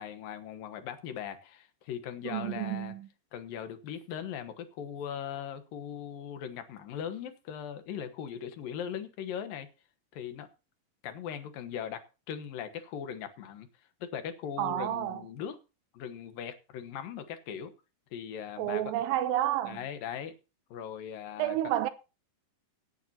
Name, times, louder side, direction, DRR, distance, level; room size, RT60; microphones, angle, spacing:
voice 1, 0.0-2.9 3.3-9.7 10.1-10.5 11.0-12.0 12.3-13.7 14.0-15.6 15.9-17.7 18.1-18.8 19.7-20.3 20.7-21.6, left 8 dB, 85° left, 3.1 m, -39 dB
voice 2, 2.2-3.1 14.6-15.3 18.6-19.8 21.4-21.9, right 13 dB, 90° right, 2.7 m, -30 dB
17.5 x 9.3 x 2.8 m
omnidirectional pair, 3.9 m